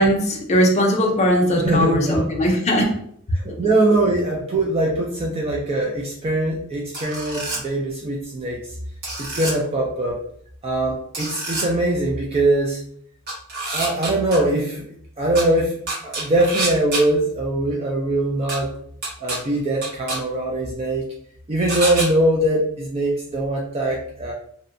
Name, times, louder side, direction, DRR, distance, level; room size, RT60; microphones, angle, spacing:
voice 1, 0.0-2.9, equal, 30° left, 1 dB, 0.5 m, -19 dB
voice 2, 1.6-2.5 3.3-8.6 9.2-10.2 10.6-12.8 13.7-14.8 15.2-15.7 16.0-18.7 19.2-21.1 21.5-24.3, right 1 dB, 30° right, -2 dB, 0.3 m, -22 dB
sound 1, 6.9-7.6 9.0-9.5 11.1-11.7 13.3-14.4 15.4-15.5 15.9-17.0 18.5-18.6 19.0-19.4 19.8-20.2 21.7-22.1, right 2 dB, 50° right, 1.0 m, -27 dB
2.6 x 2.1 x 2.5 m, 0.64 s
head